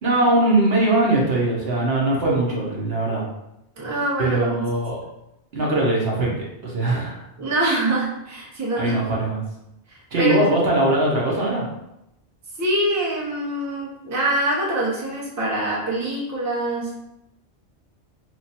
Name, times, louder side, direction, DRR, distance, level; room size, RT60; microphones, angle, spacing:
voice 1, 0.0-3.2 4.2-5.0 5.5-6.3 6.6-7.3 8.8-9.4 10.1-11.7, right 2 dB, 65° right, -3 dB, 1.0 m, -21 dB
voice 2, 3.8-4.7 7.4-9.0 9.9-10.5 12.6-16.9, right 1 dB, 20° right, -5 dB, 0.7 m, -24 dB
2.9 x 2.5 x 4.1 m, 0.86 s
omnidirectional pair, 1.2 m